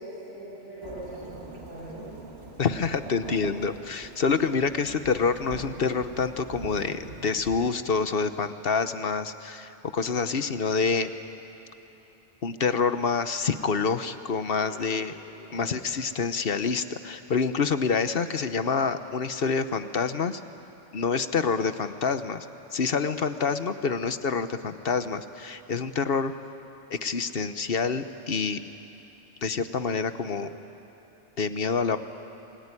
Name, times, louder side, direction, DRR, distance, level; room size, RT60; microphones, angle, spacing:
voice 1, 0.0-2.1 14.6-14.9 15.3-15.7, right 1 dB, 75° right, -10 dB, 7.6 m, -42 dB
Thunderstorm / Rain, 0.8-7.6, right 2 dB, 55° right, 2.8 m, -43 dB
voice 2, 2.6-11.1 12.4-15.1 15.5-20.4 20.9-22.5 22.7-26.3 26.9-28.6 29.4-30.5 31.4-32.0, left 5 dB, 50° left, 11 dB, 1.1 m, -27 dB
27.0 x 21.0 x 9.8 m, 3.0 s
omnidirectional pair, 1.3 m